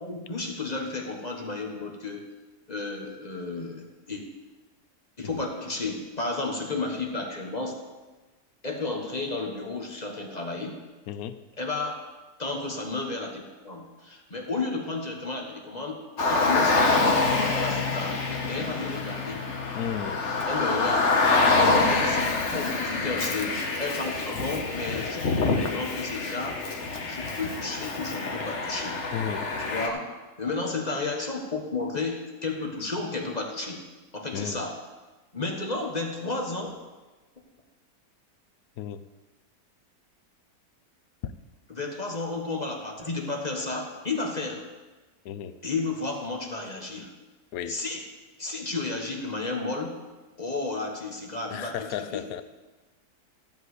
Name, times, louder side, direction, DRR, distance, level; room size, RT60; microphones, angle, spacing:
voice 1, 0.0-2.2 2.7-4.2 5.2-7.7 8.6-10.8 11.6-12.1 12.4-16.0 16.3-19.4 20.5-21.2 21.5-26.6 27.0-29.0 29.6-30.1 30.4-33.8 34.1-34.8 35.3-36.7 41.7-44.6 45.6-47.1 47.7-48.0 48.4-49.9 50.4-52.3, left 3 dB, 25° left, 1 dB, 1.4 m, -32 dB
Car, 16.2-29.9, left 3 dB, 50° left, 1.4 m, -26 dB
voice 2, 19.7-20.2 21.6-21.9 29.1-29.4 34.3-34.6 38.8-39.0 41.2-41.3 45.2-45.5 47.5-47.8 51.5-52.4, left 9 dB, 70° left, 11 dB, 1.1 m, -33 dB
14.0 x 5.4 x 8.0 m, 1.2 s
omnidirectional pair, 1.7 m